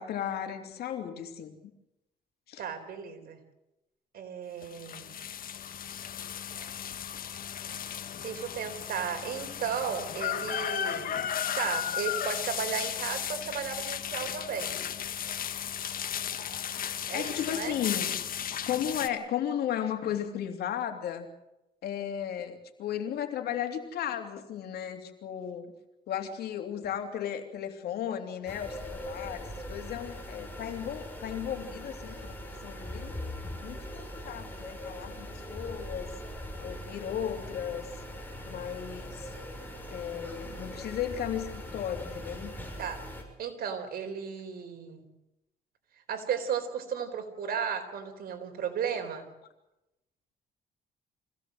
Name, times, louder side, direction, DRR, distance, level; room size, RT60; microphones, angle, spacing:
voice 1, 0.0-1.5 2.5-2.6 17.1-18.1 18.7-21.3 21.8-25.6 26.1-33.1 33.6-36.1 36.6-37.9 38.5-39.3 39.9-42.5, left 9 dB, 85° left, 6 dB, 3.1 m, -35 dB
voice 2, 2.6-3.4 4.1-5.2 8.2-11.1 11.5-14.8 17.1-17.8 42.8-43.1 43.4-45.1 46.1-49.3, right 7 dB, 70° right, 5 dB, 4.2 m, -34 dB
sound 1, 4.6-19.1, left 9 dB, 65° left, 1.6 m, -35 dB
sound 2, 28.5-43.2, left 1 dB, 10° left, 6.7 m, -41 dB
24.5 x 17.0 x 7.9 m, 0.92 s
cardioid pair, 90°, 16 cm